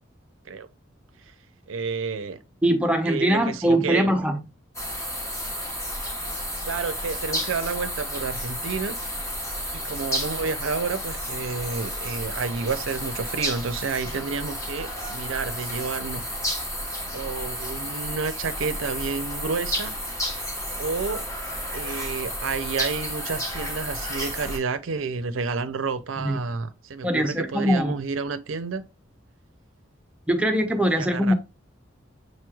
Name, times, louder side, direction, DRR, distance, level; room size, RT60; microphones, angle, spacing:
voice 1, 1.7-2.4 3.1-4.1 6.7-9.0 9.7-16.2 17.1-20.0 20.8-21.2 21.7-28.8 30.9-31.3, right 5 dB, 80° right, 0.5 m, -30 dB
voice 2, 2.6-4.4 26.2-26.4 27.0-28.0 30.3-31.3, equal, 5° right, 0.5 m, -22 dB
sound 1, 4.7-24.6, equal, 15° left, 1.1 m, -32 dB
6.4 x 3.1 x 2.3 m
head